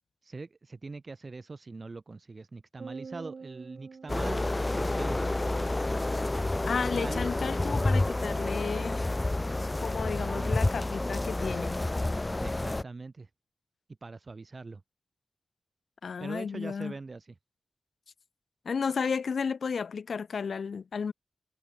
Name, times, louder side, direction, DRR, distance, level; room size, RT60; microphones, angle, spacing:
voice 1, 0.2-4.4 4.7-5.2 6.8-7.3 10.2-10.6 12.4-13.3 14.0-14.8 16.2-17.3, right 3 dB, 35° right, 2.8 m, -42 dB
sound 1, 2.8-5.3, right 5 dB, 55° right, 7.2 m, -47 dB
sound 2, 4.1-12.8, left 2 dB, 20° left, 0.8 m, -29 dB
voice 2, 6.7-9.0 9.8-11.8 16.0-16.9 18.7-21.1, left 5 dB, 65° left, 3.7 m, -33 dB
wide cardioid pair, 140°, 0 cm